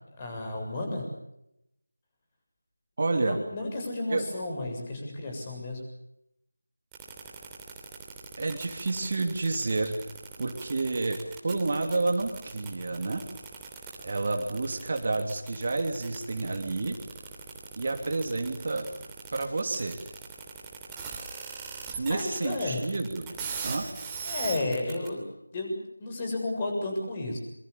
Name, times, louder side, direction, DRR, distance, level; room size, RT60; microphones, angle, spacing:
voice 1, 0.2-1.0 3.2-5.8 21.5-21.6 21.9-22.8 24.2-25.2 25.5-27.4, left 2 dB, 20° left, 2 dB, 7.4 m, -32 dB
voice 2, 3.0-3.4 4.1-4.3 8.4-9.9 10.4-11.2 11.4-13.2 14.0-17.0 17.7-18.9 19.3-20.0 22.0-23.3 23.6-23.9, right 3 dB, 40° right, 4 dB, 2.9 m, -29 dB
sound 1, 6.9-25.1, right 5 dB, 10° right, 3.1 m, -40 dB
26.5 x 25.0 x 7.1 m, 0.82 s
figure-of-eight pair, 165°, 0 cm